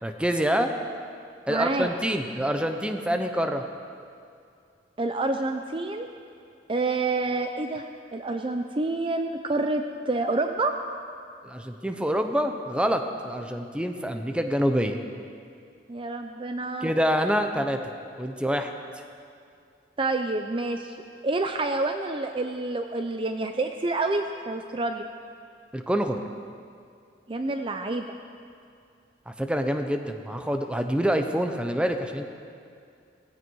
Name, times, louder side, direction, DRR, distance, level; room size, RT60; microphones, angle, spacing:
voice 1, 0.0-0.7 1.5-3.6 11.4-15.0 16.8-17.8 18.2-18.7 25.7-26.2 29.3-32.2, equal, 5° right, 5 dB, 0.8 m, -26 dB
voice 2, 1.5-1.9 5.0-6.1 6.7-7.8 8.1-10.7 15.9-16.9 20.0-20.9 21.2-25.1 27.3-28.1, right 2 dB, 30° right, 6 dB, 0.6 m, -28 dB
18.0 x 16.0 x 4.7 m, 2.3 s
head